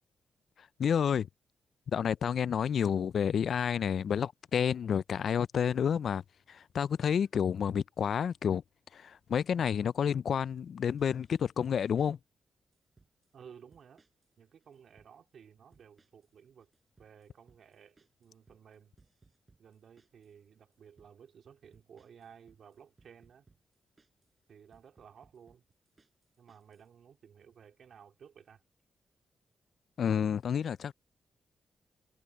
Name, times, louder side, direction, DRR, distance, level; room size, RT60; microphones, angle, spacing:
voice 1, 0.8-1.3 1.9-6.2 6.5-8.6 8.9-12.2 30.0-30.9, left 8 dB, 65° left, 0.3 m, -30 dB
sound 1, 11.0-11.4 11.7-12.1 12.7-13.3 13.7-14.3 14.6-15.1 15.7-16.3 16.6-20.3 20.7-21.1 21.7-24.3 24.7-26.9, right 3 dB, 30° right, 5.1 m, -66 dB
voice 2, 13.3-14.0 14.4-16.7 17.0-18.9 19.6-23.5 24.5-25.6 26.4-28.6, right 7 dB, 70° right, 3.0 m, -56 dB
cardioid pair, 105°, 0 cm